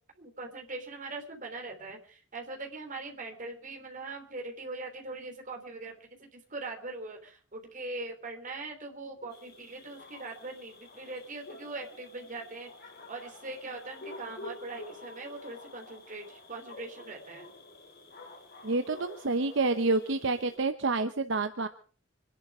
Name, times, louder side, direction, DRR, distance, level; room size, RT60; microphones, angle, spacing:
voice 1, 0.2-5.9 6.2-12.7 13.1-17.5, right 3 dB, 45° right, 3 dB, 3.4 m, -41 dB
sound 1, 9.3-20.6, left 2 dB, 55° left, 3.6 m, -49 dB
voice 2, 18.6-21.7, right 3 dB, 70° right, 9 dB, 0.9 m, -28 dB
25.5 x 11.0 x 4.8 m, 0.42 s
head